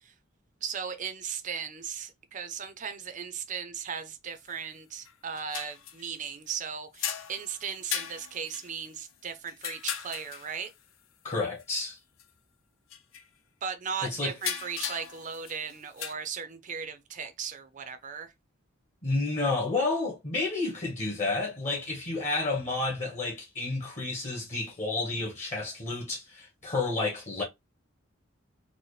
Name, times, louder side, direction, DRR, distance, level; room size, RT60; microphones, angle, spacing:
voice 1, 0.6-10.7 13.6-18.3, right 6 dB, 40° right, 0.5 m, -37 dB
sound 1, 4.5-4.6 5.1-6.5 6.9-10.7 11.6-11.7 12.0-12.2 12.9-13.2 14.3-16.1, left 9 dB, 70° left, 0.5 m, -37 dB
voice 2, 11.2-12.0 14.0-14.3 19.0-27.4, left 3 dB, 35° left, 0.9 m, -30 dB
4.1 x 2.1 x 3.1 m
head